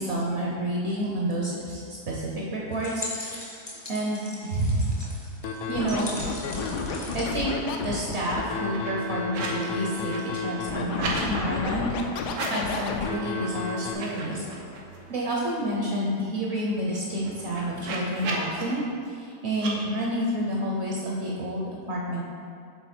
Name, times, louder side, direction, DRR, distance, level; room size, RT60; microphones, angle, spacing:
voice 1, 0.0-3.5 3.9-5.0 5.7-6.1 6.9-14.4 15.1-22.3, right 1 dB, 50° right, -3 dB, 0.9 m, -29 dB
sound 1, 2.7-8.4, left 2 dB, 25° left, 0.6 m, -40 dB
Scratching (performance technique), 5.4-13.9, left 5 dB, 75° left, 1.1 m, -31 dB
sound 2, 6.2-6.3 6.6-7.2 7.6-9.6 9.9-11.3 12.2-13.0 13.4-13.5 13.9-15.2 15.6-15.7 15.9-18.6 19.5-19.7, right 3 dB, 90° right, 1.5 m, -37 dB
7.2 x 3.8 x 4.3 m, 2.3 s
omnidirectional pair, 1.8 m